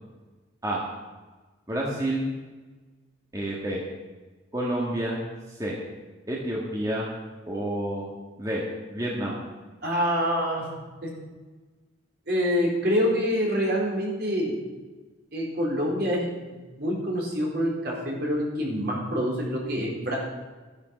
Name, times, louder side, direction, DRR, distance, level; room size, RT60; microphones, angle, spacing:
voice 1, 1.7-2.3 3.3-3.8 4.5-5.2 5.5-5.8 6.3-7.0 7.5-8.0 8.4-8.6 8.9-9.4, right 1 dB, 20° right, -4 dB, 1.8 m, -29 dB
voice 2, 9.8-10.6 11.0-11.1 12.3-14.6 15.3-16.2 16.8-20.2, equal, 55° right, -3 dB, 4.0 m, -26 dB
12.5 x 11.0 x 5.3 m, 1.3 s
head